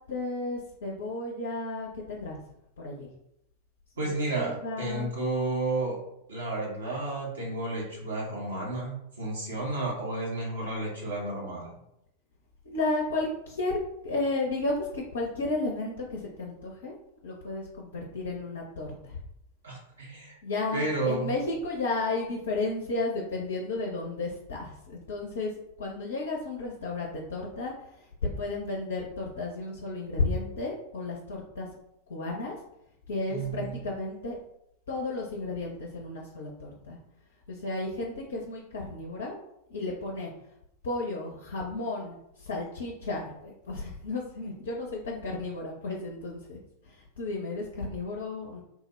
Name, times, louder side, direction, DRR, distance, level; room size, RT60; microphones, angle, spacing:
voice 1, 0.1-2.4 2.8-3.1 4.0-5.1 12.6-16.9 17.2-19.2 20.4-25.5 25.8-27.7 28.2-31.7 32.1-32.6 33.1-34.4 34.9-37.0 37.5-39.4 39.7-40.3 40.8-46.6 46.9-48.6, left 2 dB, 65° left, -2 dB, 0.5 m, -33 dB
voice 2, 4.0-6.0 6.3-11.7 19.6-20.3 20.7-21.3 33.3-33.8, right 2 dB, 70° right, -3 dB, 1.1 m, -32 dB
3.4 x 2.1 x 3.1 m, 0.80 s
figure-of-eight pair, 90°, 0 cm